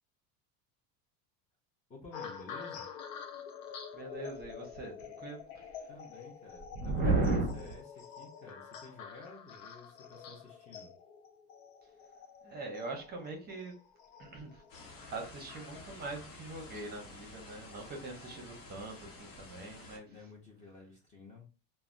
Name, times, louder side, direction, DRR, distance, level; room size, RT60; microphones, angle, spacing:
voice 1, 1.9-2.9 5.9-10.9 20.0-21.5, left 3 dB, 20° left, 0.6 m, -52 dB
sound 1, 2.1-18.6 19.2-19.5, left 7 dB, 90° left, 0.6 m, -49 dB
voice 2, 3.9-5.7 6.8-7.6 12.4-13.7 14.2-14.6 15.1-20.1, right 3 dB, 25° right, 0.7 m, -37 dB
sound 2, 14.7-20.0, left 2 dB, 55° left, 1.0 m, -51 dB
3.3 x 2.1 x 2.4 m
cardioid pair, 150°, 40 cm